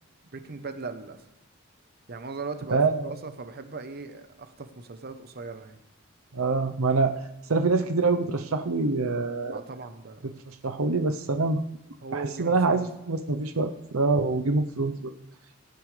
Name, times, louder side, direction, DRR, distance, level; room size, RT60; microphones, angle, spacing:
voice 1, 0.3-1.3 2.1-5.8 9.5-10.3 12.0-12.9, right 4 dB, 50° right, 9 dB, 0.9 m, -39 dB
voice 2, 2.7-3.1 6.3-7.2 7.5-9.6 10.5-11.6 12.1-15.1, right 3 dB, 80° right, 7 dB, 0.8 m, -25 dB
18.0 x 10.5 x 3.3 m, 0.87 s
head